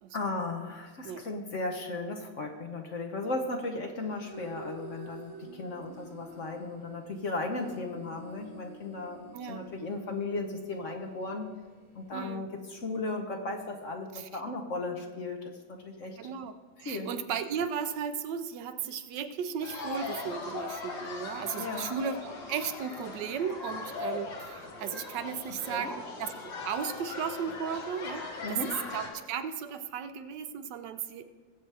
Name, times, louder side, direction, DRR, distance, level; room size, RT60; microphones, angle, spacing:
voice 1, 0.1-11.5 11.9-16.2 16.8-17.1 21.6-21.9 25.7-25.9 28.4-28.7, left 2 dB, 50° left, 3 dB, 1.1 m, -36 dB
sound 1, 4.0-12.2, right 3 dB, 40° right, 3.2 m, -49 dB
voice 2, 9.3-9.6 12.1-12.5 14.1-14.3 16.2-31.3, right 7 dB, 75° right, 10 dB, 1.2 m, -35 dB
sound 2, 19.6-29.1, left 3 dB, 80° left, 2.2 m, -39 dB
20.5 x 7.9 x 3.4 m, 1.4 s
omnidirectional pair, 2.0 m